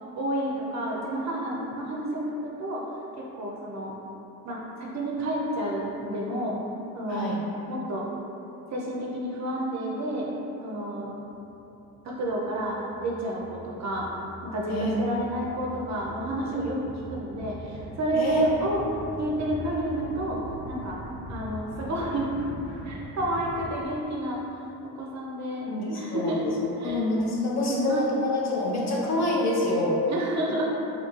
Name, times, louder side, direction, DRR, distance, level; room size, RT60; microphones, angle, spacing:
voice 1, 0.1-2.8 3.2-3.9 4.4-6.6 6.9-7.4 7.7-8.1 8.7-10.3 10.6-11.1 12.0-14.1 14.4-18.8 19.2-20.4 20.7-21.0 21.3-22.3 22.8-24.4 24.8-26.4 26.8-27.0 27.6-28.2 30.1-30.7, right 1 dB, 40° right, -3 dB, 0.5 m, -30 dB
voice 2, 7.1-7.4 14.7-14.9 18.1-18.5 25.7-26.4 26.8-30.0, left 2 dB, 40° left, -3 dB, 0.5 m, -26 dB
sound 1, 11.2-23.7, equal, 85° left, 1.2 m, -42 dB
2.3 x 2.2 x 3.0 m, 2.9 s
figure-of-eight pair, 45°, 45 cm